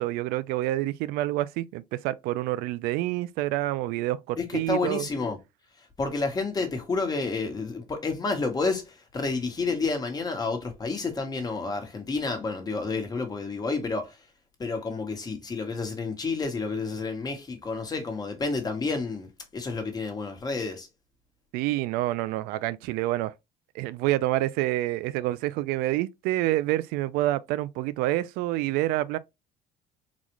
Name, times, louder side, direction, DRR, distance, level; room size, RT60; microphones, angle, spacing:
voice 1, 0.0-5.1 21.5-23.3 23.7-29.2, right 16 dB, 80° right, 0.4 m, -27 dB
voice 2, 4.4-5.4 6.0-14.2 14.6-20.9, left 4 dB, 25° left, 1.2 m, -30 dB
4.0 x 2.4 x 3.0 m
cardioid pair, 105°, 15 cm